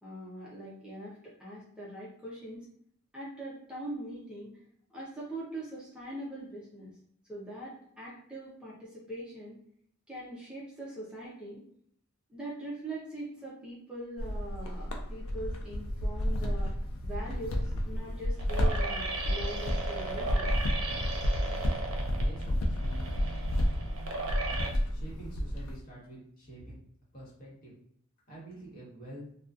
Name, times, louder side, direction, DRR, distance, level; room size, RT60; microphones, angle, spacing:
voice 1, 0.0-2.7 3.1-4.6 4.9-6.9 7.3-9.6 10.1-11.6 12.3-16.7 17.0-20.5, right 1 dB, 5° right, -7 dB, 0.6 m, -42 dB
sound 1, 14.2-25.8, equal, 75° left, 0.4 m, -31 dB
sound 2, 17.2-24.7, right 3 dB, 80° right, 0.5 m, -37 dB
voice 2, 21.8-23.4 24.9-26.8 27.1-27.7 28.3-29.3, right 1 dB, 45° left, -7 dB, 1.2 m, -47 dB
2.5 x 2.3 x 2.3 m, 0.66 s
head